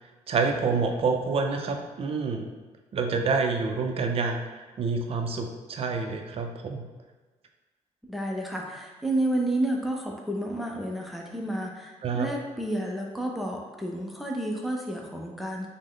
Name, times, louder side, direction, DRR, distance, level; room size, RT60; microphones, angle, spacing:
voice 1, 0.3-2.5 2.9-4.4 4.8-6.8 12.0-12.3, right 4 dB, 50° right, 3 dB, 0.5 m, -27 dB
voice 2, 8.1-15.7, right 1 dB, ahead, -1 dB, 0.5 m, -30 dB
5.2 x 2.1 x 3.7 m, 1.3 s
wide cardioid pair, 145°, 13 cm